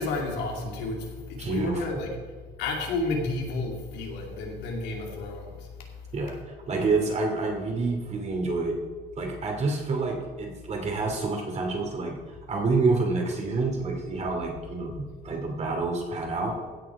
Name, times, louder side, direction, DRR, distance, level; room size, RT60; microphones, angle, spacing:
voice 1, 0.0-2.2 2.6-5.9, left 3 dB, 85° left, 1 dB, 2.3 m, -31 dB
voice 2, 1.4-2.0 6.1-8.7 9.2-12.2 12.5-16.6, right 3 dB, 40° right, 2 dB, 2.6 m, -28 dB
15.5 x 6.4 x 4.8 m, 1.4 s
cardioid pair, 110°, 17 cm